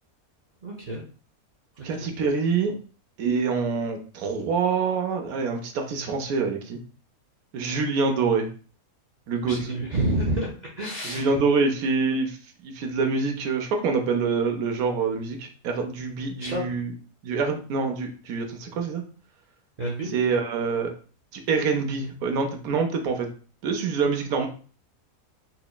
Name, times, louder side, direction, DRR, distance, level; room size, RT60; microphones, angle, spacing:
voice 1, 0.6-1.0 2.0-2.1 9.4-10.5 10.8-11.4 16.4-16.7 19.8-20.1, right 1 dB, 45° right, -4 dB, 0.6 m, -28 dB
voice 2, 1.8-2.7 3.2-6.8 7.5-8.5 9.3-9.6 11.0-12.4 12.6-16.9 17.2-19.0 20.1-20.9 21.3-23.3 23.6-24.5, right 4 dB, 85° right, 4 dB, 1.1 m, -25 dB
4.2 x 2.9 x 2.2 m, 0.39 s
omnidirectional pair, 1.5 m